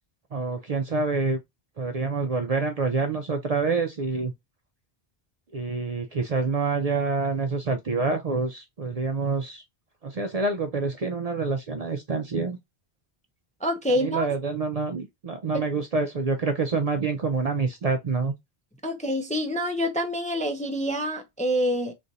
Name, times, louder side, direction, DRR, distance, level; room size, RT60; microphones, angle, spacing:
voice 1, 0.3-1.4 1.8-4.3 5.5-9.6 10.0-12.6 14.0-18.3, right 4 dB, 50° right, 0.5 m, -27 dB
voice 2, 13.6-14.3 15.5-15.7 18.8-21.9, equal, 10° left, 0.4 m, -26 dB
3.1 x 2.6 x 3.9 m
omnidirectional pair, 1.0 m